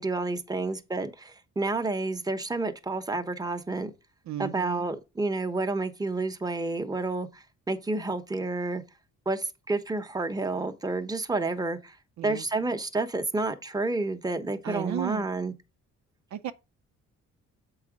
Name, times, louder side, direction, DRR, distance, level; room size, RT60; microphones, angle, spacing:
voice 1, 0.0-3.9 4.4-8.8 9.3-12.0 12.2-15.5, right 2 dB, 15° right, 1.0 m, -30 dB
voice 2, 4.3-4.9 12.2-12.4 14.6-15.3 16.3-16.5, right 11 dB, 65° right, 0.7 m, -34 dB
7.4 x 4.9 x 5.0 m
cardioid pair, 90°, 30 cm